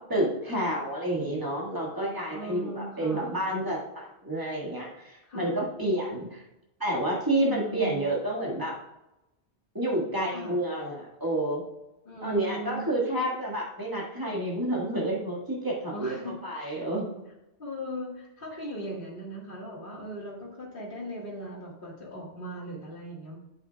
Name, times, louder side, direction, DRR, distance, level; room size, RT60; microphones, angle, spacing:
voice 1, 0.0-6.4 6.8-8.8 9.7-11.6 12.2-17.1, right 1 dB, 20° right, -4 dB, 1.7 m, -29 dB
voice 2, 2.3-3.4 5.2-5.6 7.4-8.0 10.3-10.5 12.0-13.0 15.9-16.9 17.6-23.4, right 1 dB, 55° left, -3 dB, 1.8 m, -39 dB
8.6 x 7.8 x 2.3 m, 0.93 s
omnidirectional pair, 1.1 m